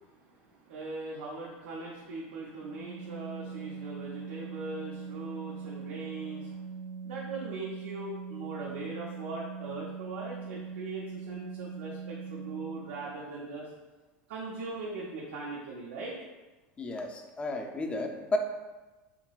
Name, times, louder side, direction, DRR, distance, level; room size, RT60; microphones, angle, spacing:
voice 1, 0.0-6.6 7.0-13.7 14.3-16.2, right 3 dB, 85° right, -4 dB, 0.6 m, -40 dB
Organ, 2.6-13.2, right 5 dB, 35° right, 0.4 m, -41 dB
voice 2, 16.8-18.4, left 2 dB, 20° left, 3 dB, 0.4 m, -33 dB
3.7 x 3.5 x 2.3 m, 1.2 s
supercardioid pair, 110°, 6 cm